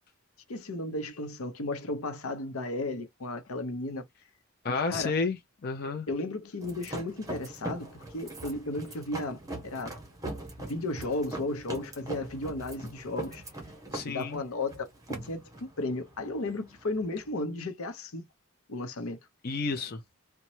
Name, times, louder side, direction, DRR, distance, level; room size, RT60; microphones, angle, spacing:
voice 1, 0.5-4.0 4.7-5.1 6.1-9.9 10.7-13.4 14.1-14.9 15.2-18.2 18.7-19.2, left 2 dB, 80° left, 0.7 m, -34 dB
voice 2, 4.6-6.1 13.9-14.4 19.4-20.0, left 4 dB, 45° left, 0.5 m, -31 dB
Running On Boardwalk, 6.6-17.3, right 2 dB, 15° right, 0.8 m, -41 dB
3.0 x 2.2 x 2.6 m
head